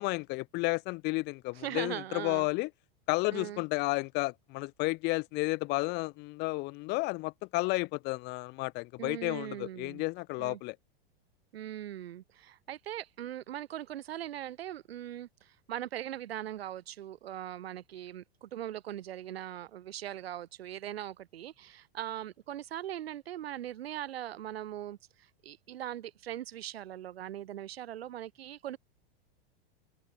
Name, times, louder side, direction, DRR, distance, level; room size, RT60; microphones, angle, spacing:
voice 1, 0.0-2.7 3.1-10.8, left 24 dB, 35° left, 0.9 m, -32 dB
voice 2, 1.6-2.5 3.3-3.6 9.0-10.0 10.4-10.6 11.5-28.8, right 12 dB, 80° right, 4.5 m, -40 dB
open air
supercardioid pair, 145°, 30 cm